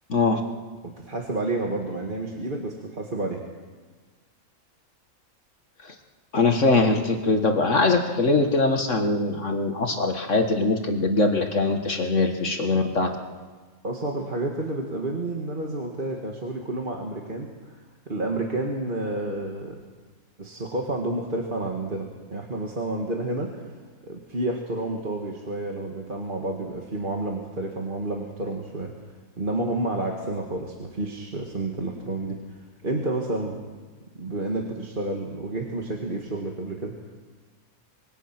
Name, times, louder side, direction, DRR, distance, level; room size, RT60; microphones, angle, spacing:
voice 1, 0.1-0.4 5.8-5.9 6.3-13.1, left 3 dB, 55° left, 4 dB, 1.9 m, -22 dB
voice 2, 0.8-3.4 13.8-17.5 18.1-19.8 20.4-23.5 24.1-28.9 29.4-32.4 32.8-33.6 34.2-36.9, right 2 dB, 35° right, 0 dB, 2.0 m, -30 dB
25.5 x 22.5 x 6.0 m, 1.4 s
omnidirectional pair, 1.5 m